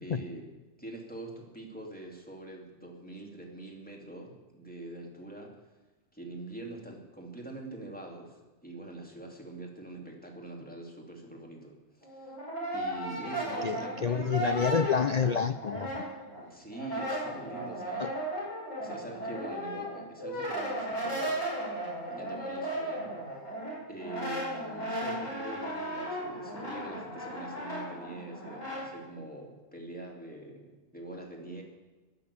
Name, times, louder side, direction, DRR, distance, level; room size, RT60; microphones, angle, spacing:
voice 1, 0.0-0.4 0.8-5.5 6.1-12.4 12.7-14.7 16.5-18.1 18.8-21.4 22.1-23.1 23.9-31.6, right 2 dB, 5° left, 0 dB, 2.9 m, -44 dB
Brass instrument, 12.0-16.4 16.7-28.9, right 1 dB, 55° left, 6.3 m, -36 dB
voice 2, 13.6-16.1 18.0-18.1, left 6 dB, 70° left, 11 dB, 0.4 m, -28 dB
21.0 x 7.0 x 8.5 m, 1.2 s
omnidirectional pair, 1.4 m